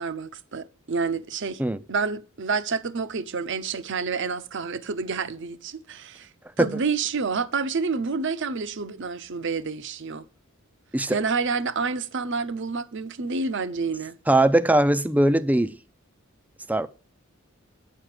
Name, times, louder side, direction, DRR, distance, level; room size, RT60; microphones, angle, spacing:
voice 1, 0.0-1.6 1.9-6.3 6.6-10.2 11.1-14.2, right 4 dB, 60° right, 0.7 m, -28 dB
voice 2, 14.3-15.7 16.7-16.9, right 1 dB, 5° right, 0.4 m, -20 dB
9.0 x 7.6 x 4.9 m
head